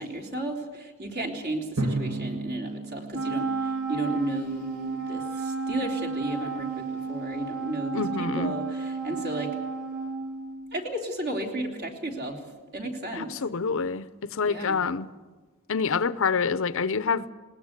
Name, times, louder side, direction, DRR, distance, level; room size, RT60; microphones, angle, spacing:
voice 1, 0.0-9.6 10.7-12.5 12.7-13.4 14.4-14.9, right 1 dB, 50° right, 2 dB, 3.4 m, -33 dB
Drum, 1.8-4.5, right 2 dB, 65° right, 2.1 m, -33 dB
Wind instrument woodwind instrument, 3.1-10.8, right 4 dB, 85° right, 2.4 m, -32 dB
voice 2, 7.9-8.6 13.1-14.1 14.3-15.1 15.7-17.3, left 5 dB, 60° left, 15 dB, 0.7 m, -27 dB
20.0 x 19.5 x 8.1 m, 1.3 s
head